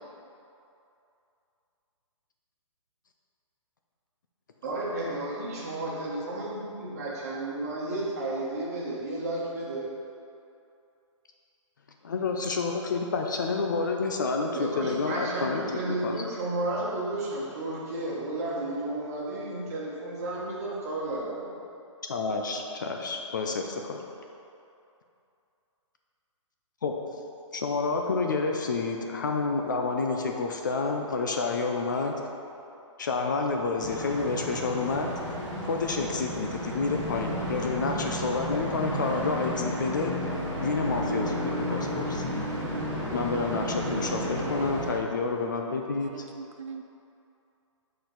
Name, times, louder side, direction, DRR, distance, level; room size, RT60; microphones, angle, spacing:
voice 1, 4.6-9.9 14.5-21.5, right 2 dB, 30° right, -6 dB, 1.2 m, -32 dB
voice 2, 12.0-16.2 22.1-24.0 26.8-26.9 27.5-32.1 33.0-35.1 35.7-40.1 40.6-42.2 43.1-46.1, left 4 dB, 40° left, 3 dB, 0.4 m, -29 dB
sound 1, 33.8-44.9, equal, 10° left, 1.2 m, -32 dB
voice 3, 45.9-46.8, right 6 dB, 70° right, 5 dB, 0.4 m, -42 dB
6.4 x 4.4 x 3.9 m, 2.7 s
hypercardioid pair, 175°, 17 cm